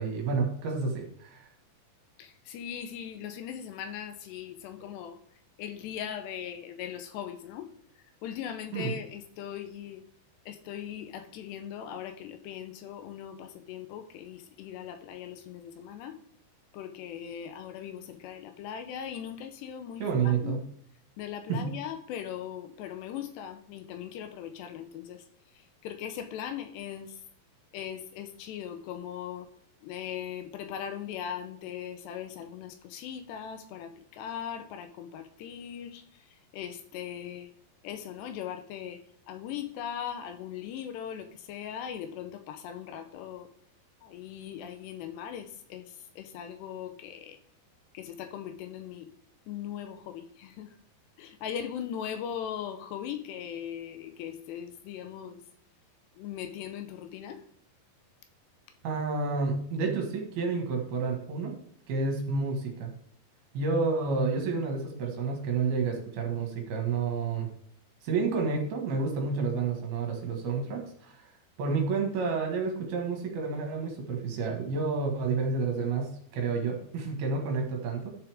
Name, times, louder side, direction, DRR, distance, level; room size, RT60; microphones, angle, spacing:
voice 1, 0.0-1.5 8.7-8.9 20.0-20.6 21.5-21.7 58.8-61.5 61.9-62.9 63.5-67.5 68.0-71.3 71.6-78.1, right 4 dB, 65° right, 2 dB, 3.2 m, -30 dB
voice 2, 2.2-5.2 5.6-7.7 8.2-10.0 10.5-16.2 16.7-20.0 20.4-20.5 21.2-25.2 25.8-27.1 27.7-29.5 29.8-33.9 34.2-36.0 36.5-37.5 37.8-39.0 39.3-43.5 44.0-45.9 46.2-47.4 48.0-49.1 49.5-50.7 51.2-55.4 56.2-57.4, left 9 dB, 80° left, 8 dB, 2.7 m, -39 dB
12.0 x 6.9 x 3.5 m, 0.64 s
omnidirectional pair, 5.1 m